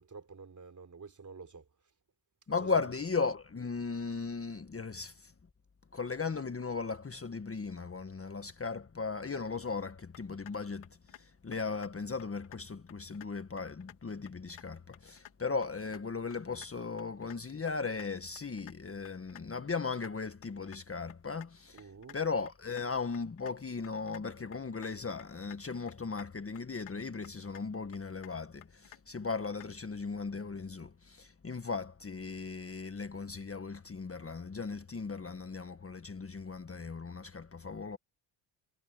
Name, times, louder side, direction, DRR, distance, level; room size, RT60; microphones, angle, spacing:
voice 1, 0.0-1.6 2.6-2.7 21.7-22.2, right 4 dB, 35° right, 4.1 m, -49 dB
voice 2, 2.5-5.3 5.9-21.9 22.1-38.0, left 4 dB, 25° left, 1.5 m, -37 dB
sound 1, 10.1-10.5 10.8-11.2 11.5-11.9 12.2-12.6 12.9-13.3 13.6-14.0 14.3-14.6 14.9-15.3 15.6-16.0 16.3-16.7 17.0-17.4 17.7-18.1 18.4-18.7 19.0-19.4 19.7-20.1 20.4-20.8 21.1-21.5 21.8-22.2 22.5-22.9 23.1-23.5 23.8-24.2 24.5-24.9 25.2-25.6 25.9-26.3 26.6-27.0 27.2-27.6 27.9-28.3 28.6-29.0 29.3-29.7, left 14 dB, 90° left, 2.8 m, -52 dB
supercardioid pair, 70°, 49 cm